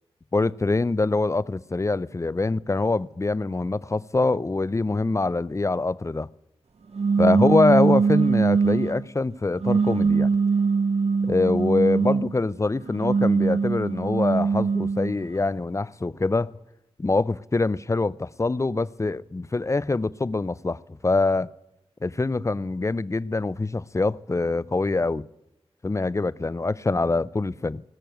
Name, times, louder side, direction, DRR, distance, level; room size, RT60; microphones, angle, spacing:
voice 1, 0.3-6.3 7.2-10.3 11.2-16.5 17.0-21.5 22.0-25.2 25.8-27.8, left 3 dB, 30° left, 0.5 m, -24 dB
sound 1, 7.0-9.0 9.6-12.3 12.9-15.2, right 5 dB, 80° right, 1.3 m, -22 dB
19.0 x 6.9 x 9.1 m
cardioid pair, 50°, 11 cm